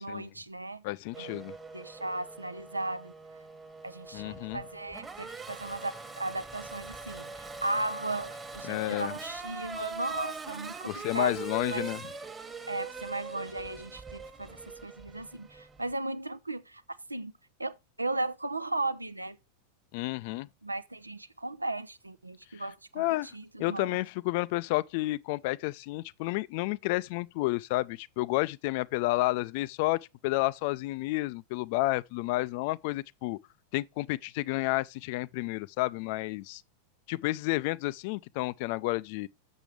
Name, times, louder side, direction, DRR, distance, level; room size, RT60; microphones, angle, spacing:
voice 1, 0.0-0.8 1.2-1.4 1.7-3.1 3.8-11.4 11.7-11.9 12.7-16.8 17.1-17.3 17.6-19.4 20.6-23.1 23.3-24.0, right 2 dB, 85° right, 0.6 m, -36 dB
voice 2, 0.8-1.6 4.1-4.7 8.6-9.1 10.9-12.1 19.9-20.5 22.6-33.4 33.7-36.6 37.1-39.3, left 19 dB, 45° left, 0.4 m, -31 dB
Race car auto racing / Accelerating revving vroom, 1.1-15.9, right 4 dB, 15° right, 1.3 m, -42 dB
7.4 x 6.9 x 4.6 m
figure-of-eight pair, 90°, 0 cm